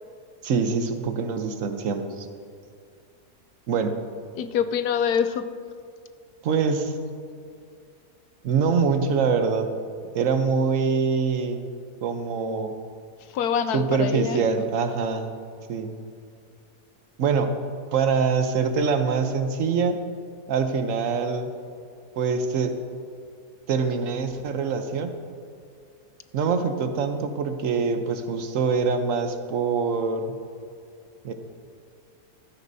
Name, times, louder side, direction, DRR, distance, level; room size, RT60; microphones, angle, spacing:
voice 1, 0.4-2.3 3.7-4.0 6.4-6.9 8.4-9.7 10.1-11.6 12.0-12.7 13.7-15.3 15.7-15.9 17.2-17.5 17.9-20.0 20.5-21.5 22.2-22.8 23.7-25.1 26.3-30.4 31.2-31.3, right 5 dB, 60° right, 7 dB, 1.1 m, -24 dB
voice 2, 4.3-5.5 13.3-14.4, left 7 dB, 80° left, 10 dB, 1.1 m, -25 dB
14.5 x 12.5 x 2.7 m, 2.3 s
omnidirectional pair, 1.6 m